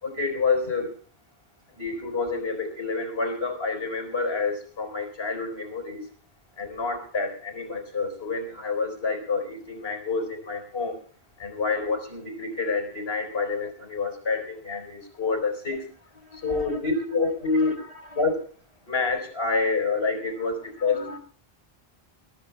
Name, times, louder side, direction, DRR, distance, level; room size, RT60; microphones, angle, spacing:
voice 1, 0.0-0.9 1.7-6.0 6.6-11.0 11.4-15.9 16.3-17.8 18.2-18.4 18.9-21.0, left 4 dB, 85° left, 5 dB, 4.2 m, -28 dB
voice 2, 16.2-17.0 17.4-18.4 20.2-21.2, equal, 35° left, 3 dB, 4.8 m, -44 dB
27.5 x 14.0 x 2.2 m, 0.43 s
omnidirectional pair, 1.0 m